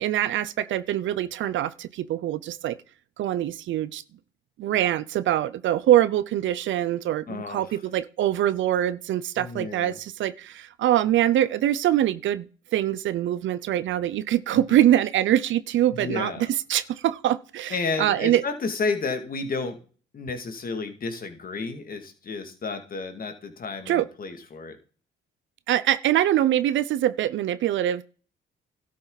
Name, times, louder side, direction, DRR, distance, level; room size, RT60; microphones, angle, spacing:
voice 1, 0.0-2.8 3.2-4.0 4.6-12.5 12.7-18.4 23.9-24.1 25.7-28.0, right 12 dB, 75° right, 0.6 m, -24 dB
voice 2, 7.3-7.8 9.4-10.0 14.7-14.8 15.9-16.4 17.7-19.8 20.1-24.8, left 4 dB, 45° left, 2.3 m, -31 dB
12.5 x 7.4 x 4.0 m
cardioid pair, 90°, 20 cm